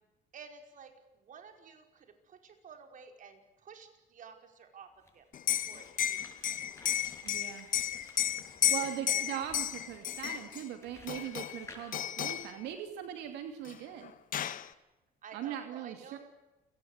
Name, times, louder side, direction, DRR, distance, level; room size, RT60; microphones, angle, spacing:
voice 1, 0.3-5.3 5.7-6.2 6.5-6.6 8.8-8.9 9.1-9.2 15.2-16.2, right 6 dB, 50° right, 5 dB, 5.2 m, -52 dB
sound 1, 5.0-12.7, left 2 dB, 15° left, 6.7 m, -56 dB
Liquid, 5.3-10.6 11.1-11.6 11.9-12.5 13.7-13.8 14.0-14.7, left 10 dB, 55° left, 1.6 m, -33 dB
voice 2, 7.2-7.7 8.7-14.1 15.3-16.2, right 10 dB, 90° right, 6 dB, 2.7 m, -40 dB
29.5 x 19.5 x 8.2 m, 1.1 s
cardioid pair, 110°, 17 cm